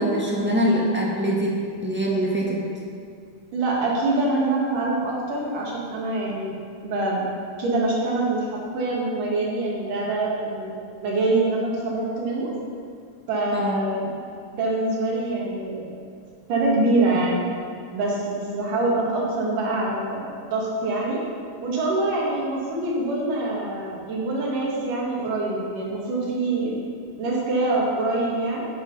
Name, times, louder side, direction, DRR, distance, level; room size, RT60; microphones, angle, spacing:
voice 1, 0.0-1.5 1.8-2.6 13.5-13.8, equal, 5° right, -5 dB, 0.8 m, -23 dB
voice 2, 3.5-6.5 6.8-7.2 7.6-10.7 11.0-12.5 13.3-14.1 14.5-15.9 16.5-17.4 17.9-21.2 21.6-26.7 27.2-28.7, right 2 dB, 85° right, -4 dB, 3.9 m, -25 dB
11.5 x 9.3 x 5.6 m, 2.3 s
omnidirectional pair, 3.6 m